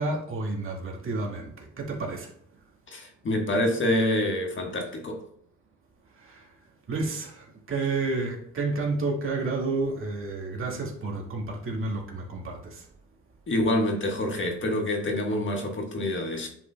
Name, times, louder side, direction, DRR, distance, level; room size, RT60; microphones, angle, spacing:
voice 1, 0.0-2.3 6.1-6.5 6.9-12.9, right 3 dB, 45° right, 2.0 m, -30 dB
voice 2, 2.9-5.2 13.5-16.5, left 1 dB, 40° left, 1.5 m, -26 dB
9.8 x 5.3 x 2.3 m
cardioid pair, 90°, 30 cm